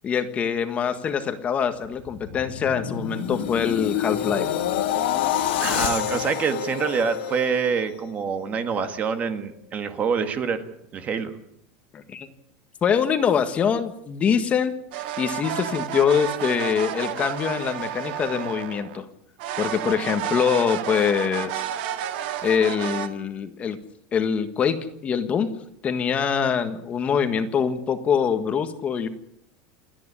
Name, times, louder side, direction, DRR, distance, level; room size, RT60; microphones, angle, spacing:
voice 1, 0.0-4.5 11.9-12.3 12.8-14.7 15.2-19.1 19.6-21.6 22.4-23.8 24.1-24.8 25.0-25.5 25.8-29.1, left 7 dB, 25° left, 9 dB, 1.6 m, -24 dB
sound 1, 1.8-8.1 8.5-8.8, left 10 dB, 85° left, 2.9 m, -28 dB
voice 2, 5.6-10.6 10.9-11.3, right 6 dB, 25° right, 9 dB, 1.7 m, -26 dB
sound 2, 14.9-19.0 19.4-23.1, right 11 dB, 70° right, 2.0 m, -31 dB
28.5 x 10.0 x 9.8 m, 0.74 s
supercardioid pair, 155°, 6 cm